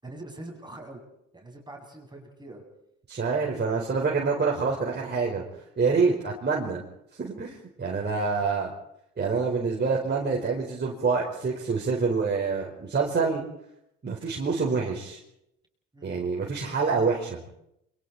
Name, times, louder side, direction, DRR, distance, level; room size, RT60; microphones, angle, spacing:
voice 1, 0.0-1.0 1.3-2.6 15.9-16.1, right 2 dB, 10° right, 1 dB, 7.9 m, -43 dB
voice 2, 3.1-5.4 5.8-6.8 7.2-8.7 9.2-13.4 14.0-15.2 16.0-17.4, right 4 dB, 30° right, -3 dB, 4.9 m, -26 dB
29.5 x 24.5 x 4.4 m, 0.80 s
hypercardioid pair, 65°, 35 cm